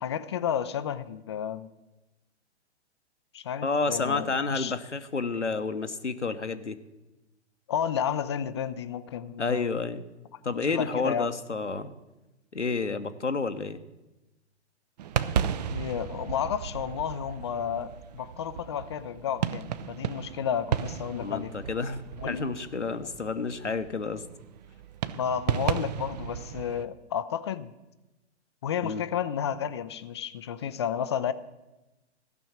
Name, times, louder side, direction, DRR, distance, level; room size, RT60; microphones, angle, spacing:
voice 1, 0.0-1.7 3.3-4.7 7.7-9.8 10.7-11.3 15.7-21.5 22.2-22.4 25.2-27.7 28.6-31.3, left 8 dB, 25° left, 13 dB, 0.4 m, -32 dB
voice 2, 3.6-6.8 9.4-10.0 10.4-11.9 12.5-13.8 21.2-24.2 28.8-29.0, left 4 dB, 85° left, 10 dB, 1.0 m, -30 dB
sound 1, 15.0-26.8, right 8 dB, 35° right, 0.6 m, -34 dB
14.5 x 6.2 x 8.6 m, 1.0 s
figure-of-eight pair, 115°, 35 cm